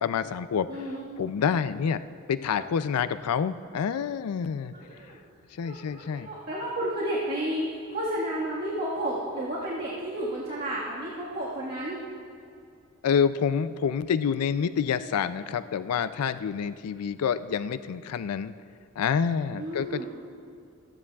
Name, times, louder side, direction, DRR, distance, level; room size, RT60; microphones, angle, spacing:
voice 1, 0.0-0.7 1.2-2.0 2.3-4.7 5.5-6.3 13.0-18.5 19.0-20.0, left 7 dB, 90° left, 13 dB, 0.4 m, -27 dB
voice 2, 0.7-1.0 4.7-5.2 5.6-12.0 19.6-20.1, right 1 dB, 50° right, -7 dB, 1.6 m, -32 dB
26.5 x 9.8 x 2.3 m, 2.5 s
head